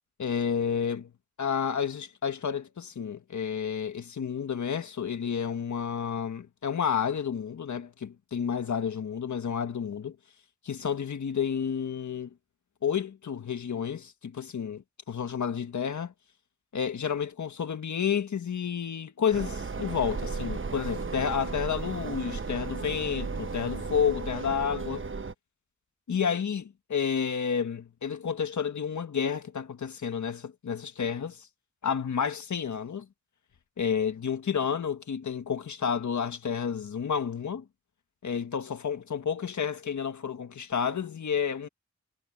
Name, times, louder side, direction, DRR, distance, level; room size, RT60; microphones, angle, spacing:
voice 1, 0.2-1.1 1.4-10.2 10.6-12.3 12.8-16.1 16.7-25.1 26.1-31.5 31.8-33.1 33.8-37.6 38.2-41.7, left 7 dB, 80° left, 1.5 m, -30 dB
sound 1, 19.3-25.3, right 4 dB, 45° right, 1.1 m, -35 dB
cardioid pair, 50°, 29 cm